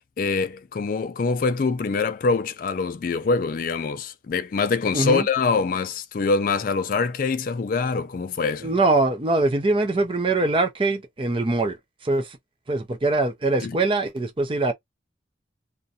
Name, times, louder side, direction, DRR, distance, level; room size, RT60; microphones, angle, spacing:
voice 1, 0.0-8.7 13.6-13.8, left 4 dB, 45° left, 0.3 m, -24 dB
voice 2, 4.9-5.3 8.6-11.8 12.0-12.4 12.7-14.7, right 2 dB, 25° right, 0.5 m, -22 dB
2.5 x 2.2 x 2.6 m
head